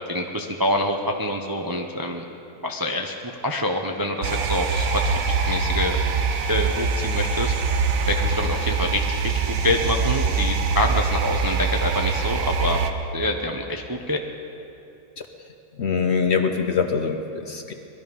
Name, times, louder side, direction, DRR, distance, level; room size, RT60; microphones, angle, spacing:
voice 1, 0.1-2.2 2.6-3.1 3.4-6.0 6.5-7.5 8.1-9.2 9.5-12.8 13.1-14.2, left 1 dB, 25° right, 2 dB, 0.5 m, -26 dB
sound 1, 4.2-12.9, right 5 dB, 65° right, 1.2 m, -24 dB
voice 2, 15.7-17.7, left 6 dB, 55° left, 5 dB, 0.9 m, -23 dB
20.0 x 13.0 x 5.4 m, 2.8 s
omnidirectional pair, 1.7 m